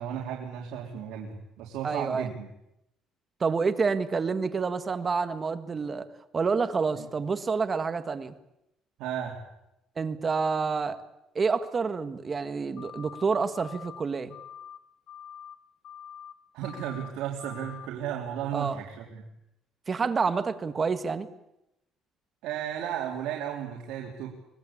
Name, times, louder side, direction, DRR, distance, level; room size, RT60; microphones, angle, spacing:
voice 1, 0.0-2.5 7.0-7.1 9.0-9.4 16.5-19.2 22.4-24.3, right 9 dB, 80° right, -1 dB, 3.5 m, -34 dB
voice 2, 1.8-2.3 3.4-6.1 6.3-8.3 10.0-11.0 11.4-14.3 18.5-18.8 19.9-21.3, right 5 dB, 30° right, 10 dB, 1.7 m, -28 dB
sound 1, 12.8-13.2 13.5-14.0 14.3-14.8 15.1-15.6 15.8-16.3 16.6-17.1 17.4-17.9, left 9 dB, 60° left, 1.8 m, -45 dB
25.0 x 20.0 x 8.7 m, 0.86 s
cardioid pair, 125°, 0 cm